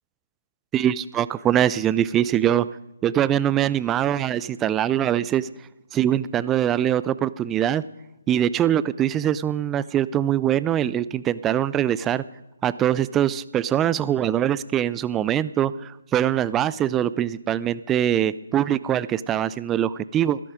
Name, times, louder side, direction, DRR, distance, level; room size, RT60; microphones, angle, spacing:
voice 1, 0.7-2.7 3.0-5.5 5.9-7.8 8.3-12.2 12.6-20.4, right 10 dB, 15° right, 17 dB, 0.4 m, -23 dB
15.0 x 13.0 x 5.0 m, 0.96 s
figure-of-eight pair, 145°, 0 cm